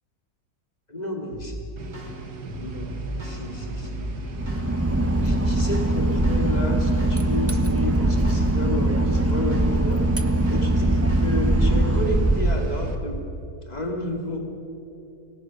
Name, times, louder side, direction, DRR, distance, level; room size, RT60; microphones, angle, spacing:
voice 1, 0.9-1.6 2.6-4.1 5.2-10.0 10.5-13.3 13.7-14.4, left 1 dB, 25° left, 1 dB, 2.7 m, -31 dB
sound 1, 1.3-1.5 1.9-2.1 2.4-4.0 4.5-4.6 5.0-6.6 7.0-7.2 7.5-9.1 9.5-9.7 10.0-11.3, right 1 dB, 65° right, 6.7 m, -35 dB
sound 2, 1.8-12.9, right 3 dB, 85° right, 2.0 m, -38 dB
Boat Water vehicle / Engine, 4.3-13.3, right 1 dB, 10° right, 0.8 m, -22 dB
28.5 x 18.5 x 6.6 m, 2.8 s
omnidirectional pair, 1.7 m